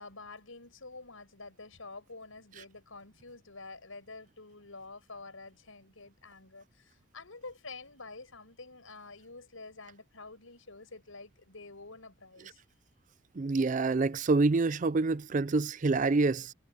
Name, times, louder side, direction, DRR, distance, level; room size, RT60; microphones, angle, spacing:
voice 1, 0.0-12.6, left 3 dB, 80° left, 5.8 m, -48 dB
voice 2, 13.4-16.5, right 3 dB, 40° right, 0.4 m, -27 dB
head